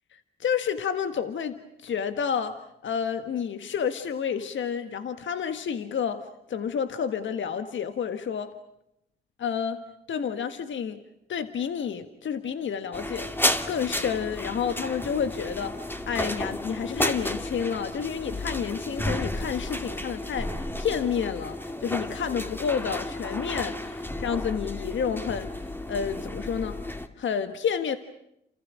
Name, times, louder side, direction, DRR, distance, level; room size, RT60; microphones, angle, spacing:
voice 1, 0.1-8.5 9.4-11.0 11.3-13.3 13.7-20.5 20.8-25.5 25.9-26.8 27.2-28.0, left 7 dB, 70° left, 9 dB, 1.6 m, -30 dB
sound 1, 12.9-27.1, left 1 dB, 10° left, 2.4 m, -32 dB
29.0 x 27.5 x 6.3 m, 0.80 s
cardioid pair, 65°, 20 cm